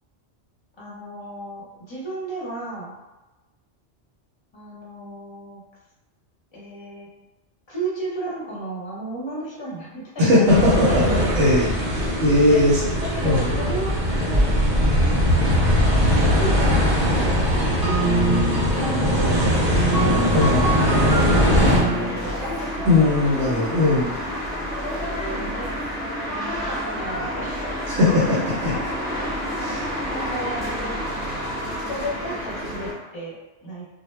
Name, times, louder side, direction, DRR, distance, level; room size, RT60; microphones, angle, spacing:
voice 1, 0.8-3.0 4.5-5.6 6.5-7.1 7.7-11.5 12.5-12.7 13.0-14.5 16.4-18.4 18.8-19.4 20.0-23.2 24.8-25.8 26.4-27.6 27.9-28.3 28.6-28.7 29.2-31.0 31.9-33.9, right 1 dB, 30° left, -6 dB, 0.6 m, -34 dB
voice 2, 10.2-12.8 13.2-13.5 20.3-20.7 22.8-24.1 27.9-28.8 29.6-30.0, left 2 dB, 85° right, -8 dB, 1.0 m, -19 dB
sound 1, 10.5-21.8, equal, 55° right, 0.8 m, -20 dB
sound 2, 17.5-23.0, right 2 dB, 25° right, 0.5 m, -25 dB
sound 3, 20.3-32.9, equal, 5° left, 0.8 m, -29 dB
2.1 x 2.1 x 3.1 m, 1.1 s
omnidirectional pair, 1.2 m